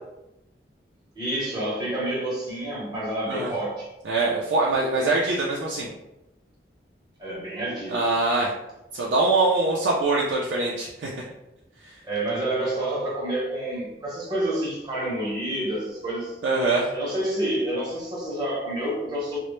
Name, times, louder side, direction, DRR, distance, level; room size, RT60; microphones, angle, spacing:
voice 1, 1.1-3.9 7.2-8.0 12.0-16.3 16.9-19.4, right 1 dB, 25° right, -6 dB, 0.8 m, -28 dB
voice 2, 4.0-5.9 7.9-8.5 8.9-11.1 16.4-16.9, right 2 dB, 90° right, -4 dB, 0.4 m, -23 dB
2.0 x 2.0 x 3.0 m, 0.93 s
head